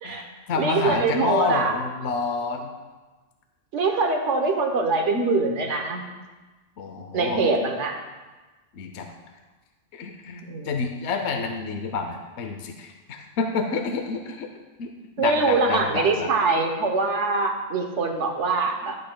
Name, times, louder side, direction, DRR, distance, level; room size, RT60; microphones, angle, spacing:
voice 1, 0.0-2.7 6.8-7.4 8.7-9.1 9.9-14.5 14.8-14.9 15.2-16.3, left 4 dB, 70° left, 5 dB, 0.9 m, -29 dB
voice 2, 0.6-1.7 3.7-6.1 7.1-8.0 10.4-10.7 15.2-19.0, right 3 dB, 80° right, 3 dB, 1.3 m, -23 dB
12.0 x 7.9 x 2.2 m, 1.2 s
omnidirectional pair, 1.2 m